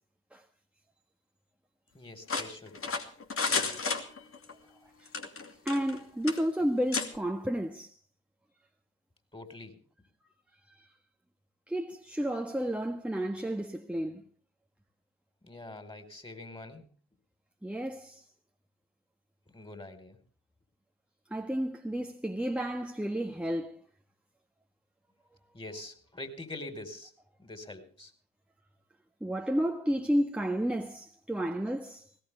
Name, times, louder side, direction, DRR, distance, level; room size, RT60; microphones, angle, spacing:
voice 1, 1.9-2.9 9.3-9.8 15.4-16.9 19.5-20.2 25.5-27.1 27.4-28.1, left 2 dB, 15° left, 4.7 m, -44 dB
sound 1, 2.3-4.5 5.1-6.0 6.3-6.4 6.9-7.1, left 4 dB, 45° left, 2.7 m, -32 dB
voice 2, 5.6-7.9 11.7-14.2 17.6-18.2 21.3-23.8 29.2-32.0, equal, 5° right, 1.5 m, -31 dB
20.5 x 18.0 x 3.5 m
hypercardioid pair, 45°, 31 cm